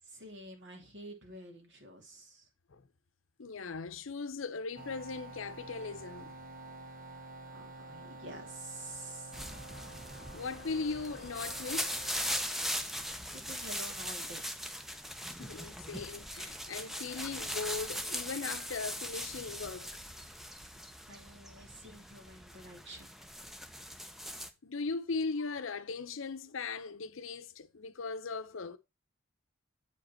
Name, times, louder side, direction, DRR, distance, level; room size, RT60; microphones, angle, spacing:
voice 1, 0.1-2.5 7.5-9.4 12.9-14.4 21.1-23.1, right 1 dB, 55° right, 2.6 m, -49 dB
voice 2, 3.4-6.4 10.3-12.3 15.4-20.0 24.6-28.8, left 4 dB, 70° left, 0.7 m, -39 dB
sound 1, 4.8-12.5, right 2 dB, 40° right, 1.1 m, -49 dB
sound 2, 9.3-24.5, equal, ahead, 0.6 m, -40 dB
8.5 x 5.1 x 4.4 m
head